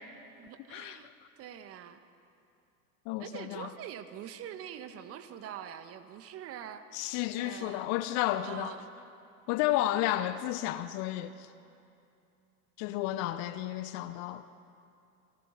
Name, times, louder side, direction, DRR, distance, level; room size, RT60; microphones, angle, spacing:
voice 1, 0.4-1.1 1.4-2.0 3.2-7.9 8.4-8.9, right 9 dB, 30° right, 1.5 m, -44 dB
voice 2, 3.1-3.7 6.9-8.7 9.5-11.5 12.8-14.4, left 14 dB, 35° left, 0.8 m, -32 dB
29.5 x 23.5 x 5.3 m
figure-of-eight pair, 95°, 46 cm